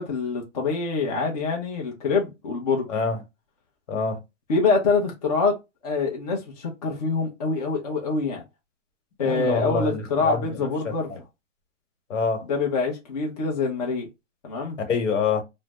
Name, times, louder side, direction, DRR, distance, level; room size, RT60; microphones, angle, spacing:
voice 1, 0.0-2.9 4.5-5.5 5.8-8.4 9.2-11.1 12.5-14.1 14.4-14.8, left 4 dB, 30° left, 0.6 m, -25 dB
voice 2, 2.9-3.2 3.9-4.2 9.2-11.2 12.1-12.4 14.9-15.4, left 5 dB, 75° left, 1.2 m, -26 dB
2.6 x 2.1 x 3.3 m
hypercardioid pair, 170°, 37 cm